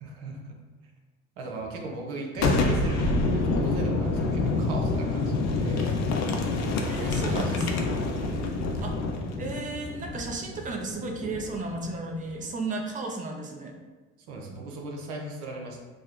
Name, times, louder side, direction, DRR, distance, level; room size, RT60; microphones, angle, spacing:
voice 1, 0.0-0.6 1.4-5.9 6.8-7.6 8.2-8.6 14.3-15.8, right 2 dB, 75° right, 1 dB, 0.7 m, -37 dB
Boom, 2.3-11.9, left 3 dB, 50° left, 0.7 m, -27 dB
voice 2, 6.9-7.8 8.8-9.0 9.4-13.7, right 3 dB, 20° right, 2 dB, 0.6 m, -34 dB
6.2 x 2.1 x 2.5 m, 1.3 s
hypercardioid pair, 65°, 37 cm